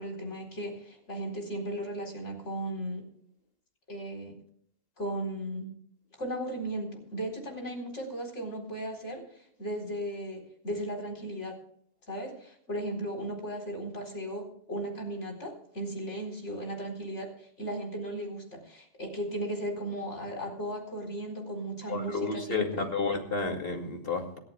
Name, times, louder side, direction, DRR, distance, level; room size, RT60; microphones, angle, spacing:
voice 1, 0.0-3.0 3.9-4.3 5.0-5.7 6.2-11.6 12.1-22.8, right 1 dB, 85° left, 2 dB, 4.5 m, -36 dB
voice 2, 21.9-24.4, left 4 dB, 55° left, 3 dB, 2.6 m, -31 dB
27.5 x 11.5 x 2.3 m, 0.65 s
omnidirectional pair, 1.2 m